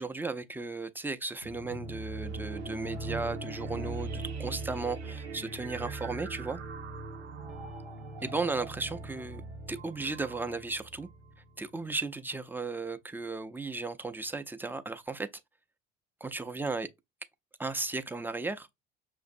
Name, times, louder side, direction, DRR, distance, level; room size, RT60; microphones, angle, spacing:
voice 1, 0.0-6.6 8.2-11.1 11.6-15.3 16.2-16.9 17.6-18.7, right 3 dB, 5° right, 0.4 m, -35 dB
sound 1, 1.4-11.6, right 3 dB, 90° right, 0.7 m, -40 dB
6.2 x 2.5 x 2.5 m
figure-of-eight pair, 60°, 33 cm